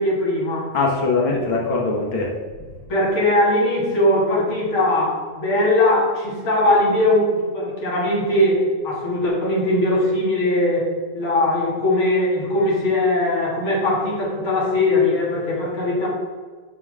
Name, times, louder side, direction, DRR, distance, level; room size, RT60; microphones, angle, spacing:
voice 1, 0.0-0.7 1.3-1.5 2.9-10.9 11.1-16.1, left 1 dB, 45° left, -3 dB, 2.3 m, -20 dB
voice 2, 0.7-2.3, left 3 dB, 65° left, -2 dB, 1.2 m, -21 dB
5.8 x 4.9 x 6.0 m, 1.4 s
omnidirectional pair, 3.5 m